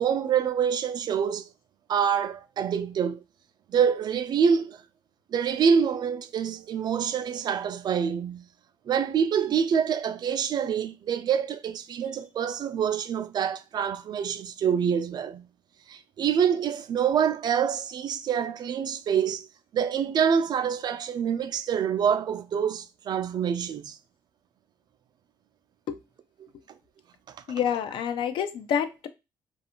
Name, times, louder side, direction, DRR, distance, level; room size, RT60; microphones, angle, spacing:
voice 1, 0.0-1.5 1.9-3.2 3.7-4.8 5.3-8.4 8.9-15.5 15.9-19.5 19.7-24.0 27.3-27.4, right 7 dB, 50° right, 0.3 m, -26 dB
voice 2, 27.5-29.1, left 8 dB, 65° left, 0.4 m, -28 dB
2.4 x 2.4 x 2.8 m
supercardioid pair, 65°, 9 cm